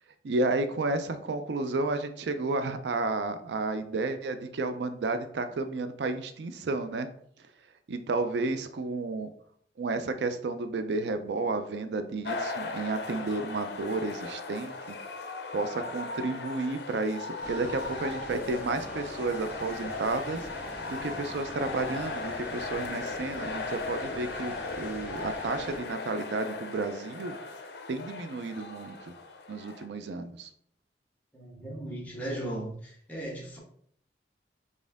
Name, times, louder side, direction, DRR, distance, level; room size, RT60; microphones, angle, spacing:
voice 1, 0.2-7.1 7.9-9.3 9.8-15.0 15.5-27.6 27.9-29.1 29.5-30.5, right 3 dB, 80° right, 0.4 m, -32 dB
sound 1, 12.2-29.9, left 3 dB, 65° left, 0.6 m, -38 dB
sound 2, 17.4-25.8, equal, 10° right, 1.2 m, -45 dB
voice 2, 31.3-33.6, right 1 dB, 10° left, 1.2 m, -37 dB
4.2 x 3.6 x 3.5 m
head